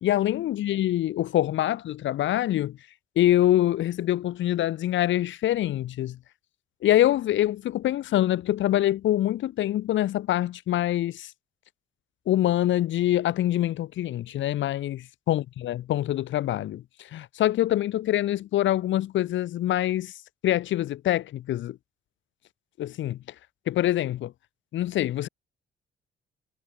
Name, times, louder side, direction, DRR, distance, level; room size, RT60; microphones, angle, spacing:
voice 1, 0.0-2.8 3.2-6.2 6.8-11.3 12.3-20.1 20.4-21.8 22.8-23.2 23.7-24.3 24.7-25.3, left 13 dB, 70° left, 0.9 m, -25 dB
cardioid pair, 90°, 20 cm